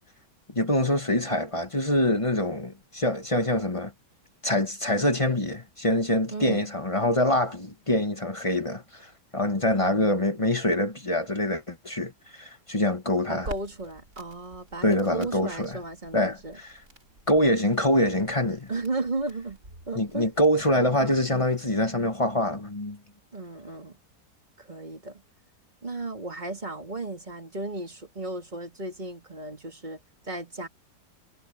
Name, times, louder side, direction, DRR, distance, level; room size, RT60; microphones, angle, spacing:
voice 1, 0.5-3.9 4.4-13.5 14.8-15.8 16.1-16.7 17.3-18.7 19.9-23.0, left 1 dB, 20° left, 1.3 m, -25 dB
voice 2, 6.3-6.7 9.8-10.5 13.3-16.6 18.7-19.6 19.9-20.3 23.3-24.0 24.6-25.2 25.8-30.7, right 2 dB, 25° right, 3.2 m, -35 dB
Crackle, 13.4-20.7, right 1 dB, 50° right, 6.9 m, -48 dB
omnidirectional pair, 1.9 m